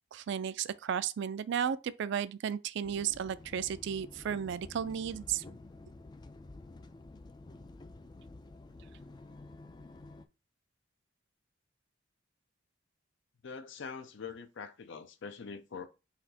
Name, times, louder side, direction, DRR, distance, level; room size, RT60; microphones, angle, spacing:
voice 1, 0.1-5.4, right 8 dB, 65° right, 0.3 m, -34 dB
sound 1, 2.8-10.3, left 2 dB, 20° left, 0.3 m, -50 dB
voice 2, 13.4-15.9, left 5 dB, 65° left, 0.6 m, -44 dB
4.2 x 2.8 x 4.2 m
head